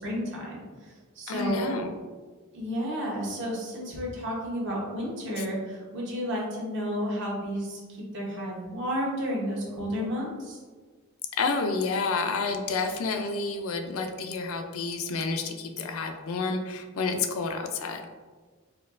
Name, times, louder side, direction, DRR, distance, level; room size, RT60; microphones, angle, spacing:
voice 1, 0.0-1.7 2.5-10.6, equal, 55° right, -4 dB, 0.9 m, -32 dB
voice 2, 1.3-1.9 11.4-18.0, left 4 dB, 70° left, 5 dB, 0.4 m, -29 dB
4.3 x 2.3 x 2.4 m, 1.4 s
head